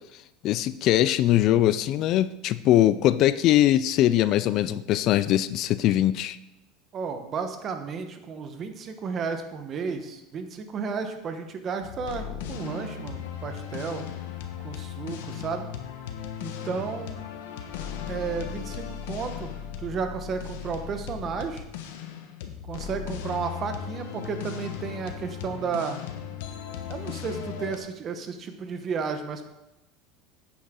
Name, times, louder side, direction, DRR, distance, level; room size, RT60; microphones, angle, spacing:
voice 1, 0.4-6.4, left 13 dB, 45° left, 15 dB, 0.3 m, -21 dB
voice 2, 6.9-14.0 14.6-15.7 16.4-17.2 18.1-19.5 19.8-21.6 22.7-26.0 26.9-29.5, right 5 dB, 30° right, 7 dB, 1.1 m, -33 dB
sound 1, 11.8-27.8, left 8 dB, 90° left, 1.2 m, -37 dB
10.0 x 8.5 x 3.8 m, 0.94 s
supercardioid pair, 150°, 0 cm